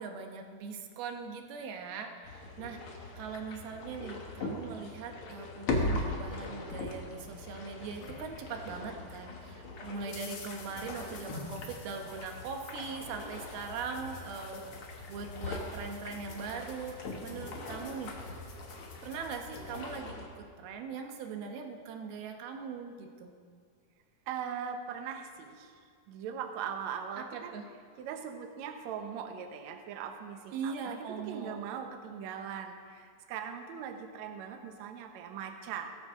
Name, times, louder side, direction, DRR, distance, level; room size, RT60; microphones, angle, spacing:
voice 1, 0.0-2.8 3.1-18.1 19.0-23.3 27.2-27.7 30.5-31.7, right 5 dB, 90° right, 4 dB, 3.0 m, -41 dB
sound 1, 2.2-20.3, left 2 dB, 55° left, 1.6 m, -40 dB
sound 2, 7.2-9.1 9.5-20.0, left 4 dB, 85° left, 3.7 m, -51 dB
voice 2, 24.3-25.7 26.1-27.5 28.0-35.9, right 7 dB, 70° right, 5 dB, 1.8 m, -40 dB
17.0 x 14.0 x 3.7 m, 2.1 s
omnidirectional pair, 4.3 m